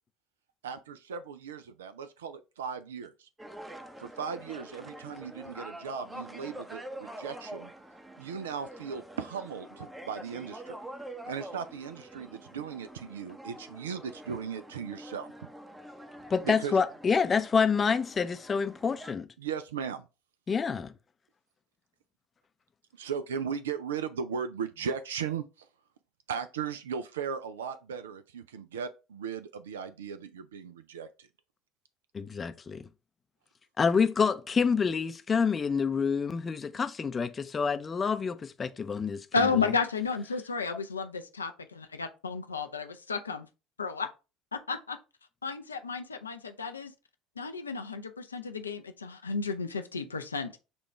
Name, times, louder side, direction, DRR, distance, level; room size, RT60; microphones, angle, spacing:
voice 1, 0.6-3.3 4.0-7.7 8.2-10.8 11.3-15.3 16.4-16.8 19.4-20.1 23.0-25.7 26.3-31.3, right 7 dB, 75° right, 0.3 m, -37 dB
sound 1, 3.4-19.1, right 1 dB, 10° right, 0.7 m, -46 dB
voice 2, 16.3-19.3 20.5-20.9 32.1-32.9 33.8-39.3 39.6-39.7, left 5 dB, 30° left, 0.5 m, -27 dB
voice 3, 39.3-43.5 43.8-44.1 44.7-45.0 45.4-46.9 47.4-50.6, left 4 dB, 85° left, 0.5 m, -32 dB
6.7 x 2.4 x 3.2 m
figure-of-eight pair, 65°, 0 cm